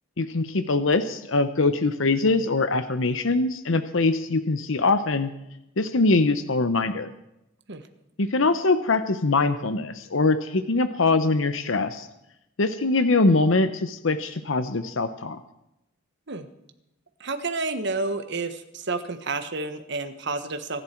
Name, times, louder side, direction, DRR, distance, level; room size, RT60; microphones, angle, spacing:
voice 1, 0.2-5.3 5.8-7.1 8.2-12.1 12.6-15.4, left 3 dB, 70° left, 11 dB, 0.9 m, -23 dB
voice 2, 17.2-20.8, right 3 dB, 60° right, 8 dB, 1.4 m, -30 dB
25.5 x 11.0 x 4.5 m, 0.85 s
head